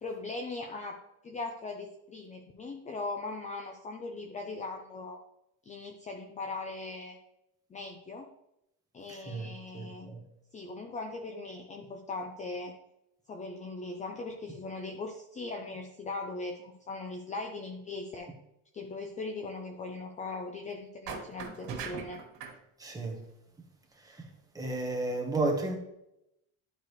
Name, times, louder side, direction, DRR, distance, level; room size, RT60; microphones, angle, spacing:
voice 1, 0.0-5.2 5.7-7.2 7.7-8.3 8.9-10.1 10.5-12.7 13.3-18.3 18.7-22.2, left 3 dB, 20° left, 0.6 m, -39 dB
voice 2, 9.1-9.5 9.7-10.2 22.8-23.2 24.5-25.8, right 2 dB, 10° right, 1.3 m, -32 dB
sound 1, 21.1-22.6, right 6 dB, 75° right, 2.1 m, -40 dB
11.5 x 5.0 x 3.2 m
cardioid pair, 155°, 35 cm